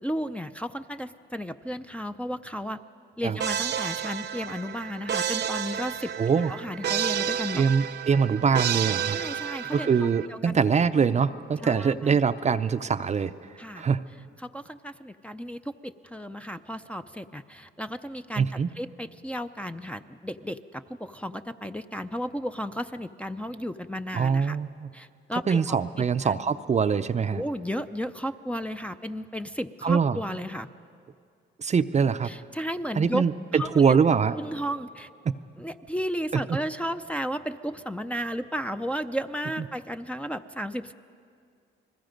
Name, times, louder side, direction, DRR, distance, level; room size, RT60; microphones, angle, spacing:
voice 1, 0.0-2.8 3.2-6.1 6.5-7.6 9.1-10.6 11.6-12.2 13.6-13.9 14.4-24.6 24.9-26.4 27.3-30.7 32.2-33.3 33.5-33.9 34.4-35.1 35.6-40.9, equal, 5° left, 5 dB, 0.6 m, -34 dB
sound 1, 3.4-10.3, right 9 dB, 60° right, 0.8 m, -31 dB
voice 2, 6.2-6.5 7.5-9.2 9.7-13.3 13.8-14.0 18.4-18.7 24.1-24.9 25.5-27.4 29.8-30.2 31.6-32.3 33.0-34.4 35.3-35.4 36.3-36.6, right 6 dB, 35° right, 11 dB, 0.6 m, -23 dB
30.0 x 20.5 x 5.2 m, 2.3 s
cardioid pair, 90°, 20 cm